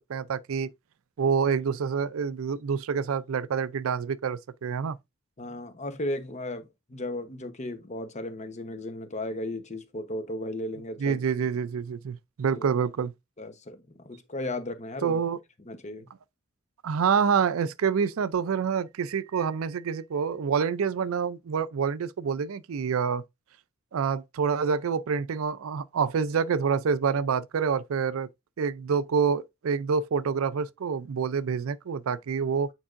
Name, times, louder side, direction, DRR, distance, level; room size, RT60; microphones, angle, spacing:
voice 1, 0.1-0.7 1.2-5.0 11.0-13.1 15.0-15.4 16.8-23.2 23.9-28.3 28.6-32.7, right 6 dB, 85° right, 0.4 m, -27 dB
voice 2, 5.4-11.2 12.6-12.7 13.4-15.2 15.6-16.1, left 1 dB, 35° left, 0.9 m, -35 dB
8.6 x 4.6 x 2.5 m
head